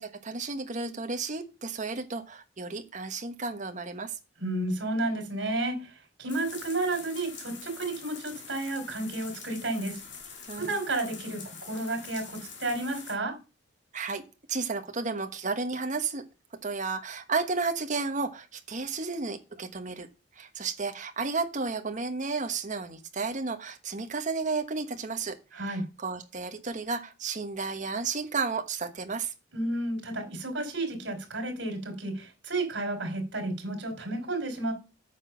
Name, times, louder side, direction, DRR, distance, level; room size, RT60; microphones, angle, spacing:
voice 1, 0.0-4.2 10.5-10.8 13.9-14.2 14.5-16.2 16.6-20.1 20.4-29.3, right 4 dB, 45° right, 6 dB, 1.3 m, -32 dB
voice 2, 4.4-5.9 6.2-10.0 10.6-13.3 25.5-25.8 29.5-34.7, right 2 dB, 70° right, 4 dB, 3.6 m, -32 dB
sound 1, 6.3-13.2, left 6 dB, 70° left, 2.6 m, -45 dB
9.0 x 6.1 x 5.7 m, 0.31 s
head